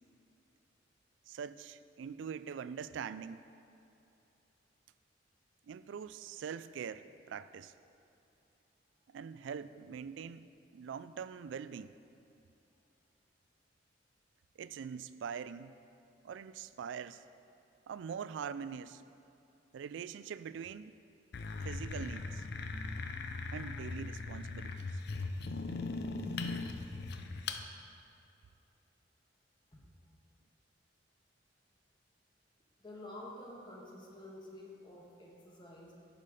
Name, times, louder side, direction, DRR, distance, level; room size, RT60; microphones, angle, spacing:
voice 1, 1.3-3.5 5.7-7.7 9.1-10.5 10.7-11.9 14.6-15.8 16.2-17.2 17.9-19.0 19.7-21.0 21.6-22.4 23.5-25.0, right 7 dB, 85° right, 14 dB, 0.3 m, -43 dB
sound 1, 21.3-27.6, left 3 dB, 60° left, 0.5 m, -39 dB
voice 2, 32.8-35.9, left 1 dB, 25° left, -2 dB, 1.3 m, -49 dB
10.5 x 5.7 x 4.9 m, 2.7 s
head